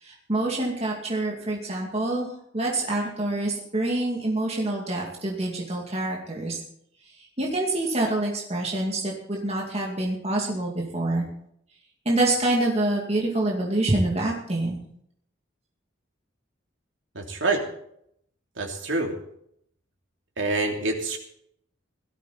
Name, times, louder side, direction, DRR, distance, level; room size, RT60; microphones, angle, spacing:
voice 1, 0.0-2.3 2.5-6.6 7.4-11.3 12.1-14.8, right 2 dB, 30° right, -2 dB, 2.4 m, -26 dB
voice 2, 17.1-17.6 18.6-19.1 20.4-21.2, right 2 dB, 70° right, 1 dB, 3.1 m, -26 dB
17.5 x 13.5 x 4.2 m, 0.71 s
head